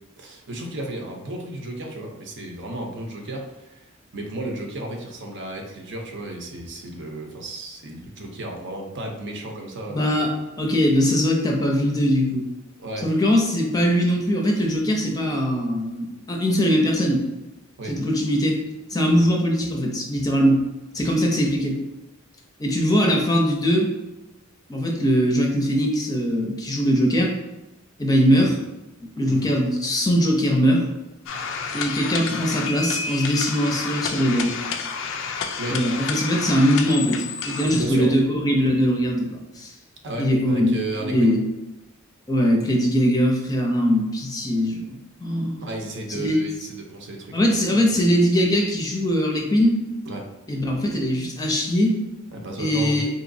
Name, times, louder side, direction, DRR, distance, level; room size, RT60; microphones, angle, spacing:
voice 1, 0.2-10.2 12.8-13.1 17.8-18.0 19.1-19.3 21.0-21.1 29.2-29.6 35.6-35.8 37.6-38.1 40.0-41.3 45.6-47.8 50.1-50.3 52.3-53.0, right 1 dB, 60° right, 1 dB, 0.7 m, -33 dB
voice 2, 9.9-10.3 10.6-12.5 13.0-17.2 17.9-18.6 18.9-20.6 20.9-21.8 22.6-23.9 24.7-27.3 28.0-28.6 29.0-30.8 31.7-34.5 35.7-39.7 40.2-40.7 41.0-41.4 42.3-45.7 46.1-46.4 47.3-49.8 50.5-52.0 52.6-53.1, equal, 20° left, 0 dB, 0.6 m, -21 dB
sound 1, 31.3-37.8, left 5 dB, 65° left, 0.4 m, -30 dB
4.0 x 3.0 x 2.6 m, 1.0 s
head